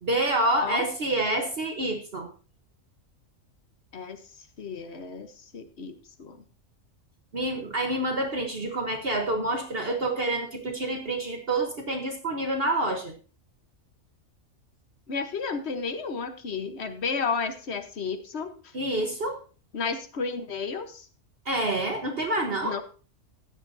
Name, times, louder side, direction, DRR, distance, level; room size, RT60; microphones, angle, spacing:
voice 1, 0.0-2.3 7.3-13.1 18.7-19.4 21.4-22.8, right 1 dB, 50° right, 4 dB, 1.3 m, -27 dB
voice 2, 4.6-6.4 15.1-18.5 19.7-21.1 22.6-22.8, left 5 dB, 55° left, 8 dB, 1.3 m, -32 dB
15.5 x 9.9 x 2.7 m, 0.37 s
omnidirectional pair, 1.4 m